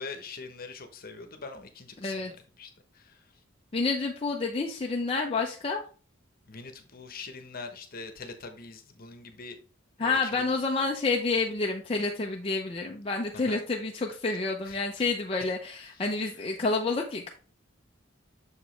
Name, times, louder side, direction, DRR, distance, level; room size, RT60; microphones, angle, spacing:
voice 1, 0.0-3.3 6.5-9.5 10.0-10.6 13.3-13.6 14.3-15.1 15.4-16.3, left 4 dB, 50° left, 7 dB, 1.0 m, -44 dB
voice 2, 2.0-2.3 3.7-5.8 10.0-17.3, left 3 dB, 30° left, 0 dB, 0.6 m, -29 dB
6.6 x 5.0 x 3.2 m, 0.39 s
head